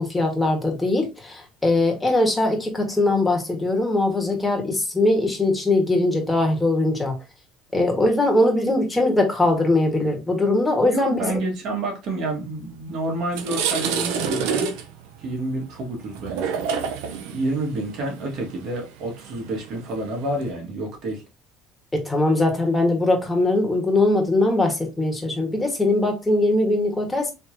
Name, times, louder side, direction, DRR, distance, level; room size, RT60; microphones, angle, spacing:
voice 1, 0.0-7.1 7.7-11.3 21.9-27.3, left 2 dB, 10° left, 1.7 m, -21 dB
voice 2, 10.8-14.7 15.2-16.9 17.3-21.2, right 1 dB, 60° right, 1.8 m, -29 dB
sound 1, 12.7-12.8 13.2-20.5, right 6 dB, 85° right, 0.7 m, -29 dB
4.3 x 3.1 x 2.8 m
supercardioid pair, 95°, 0 cm